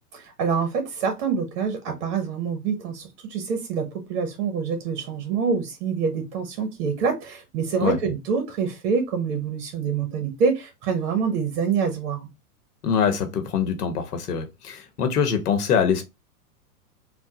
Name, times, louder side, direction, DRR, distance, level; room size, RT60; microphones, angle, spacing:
voice 1, 0.1-12.3, right 5 dB, 50° right, 0.9 m, -26 dB
voice 2, 12.8-16.0, left 7 dB, 70° left, 1.0 m, -24 dB
3.4 x 2.2 x 2.8 m
hypercardioid pair, 120°, 47 cm